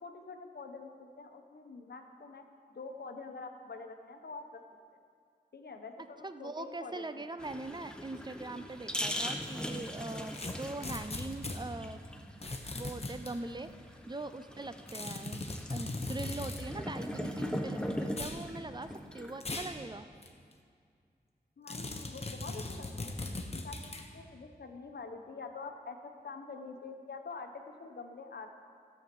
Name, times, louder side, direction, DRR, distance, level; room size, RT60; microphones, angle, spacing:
voice 1, 0.0-2.4 2.7-4.6 5.5-7.3 21.6-23.1 23.5-28.5, left 4 dB, 75° left, 5 dB, 1.0 m, -46 dB
voice 2, 6.2-12.1 12.7-13.7 14.1-15.4 15.7-20.1, right 2 dB, 25° right, 11 dB, 0.5 m, -42 dB
sound 1, 7.4-19.6, equal, 5° left, 0.9 m, -40 dB
sound 2, 10.3-11.6 12.4-13.3 14.9-16.7 18.1-18.4 19.4-19.8 20.2-20.3 21.7-24.1, left 2 dB, 35° left, 1.0 m, -39 dB
13.0 x 7.2 x 6.0 m, 2.3 s
wide cardioid pair, 75°, 17 cm